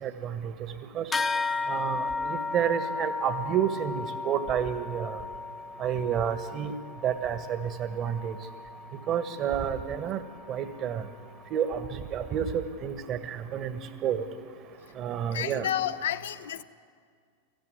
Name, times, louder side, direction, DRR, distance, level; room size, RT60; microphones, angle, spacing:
voice 1, 0.0-0.5 0.9-1.1 1.7-5.2 5.8-6.7 7.0-8.4 9.1-10.2 10.5-11.1 11.5-14.2 15.0-15.7, right 8 dB, 35° right, 1.4 m, -30 dB
sound 1, 1.1-10.9, left 4 dB, 15° left, 0.9 m, -35 dB
voice 2, 15.3-16.6, left 10 dB, 60° left, 0.6 m, -31 dB
19.0 x 14.5 x 9.5 m
figure-of-eight pair, 90°, 0 cm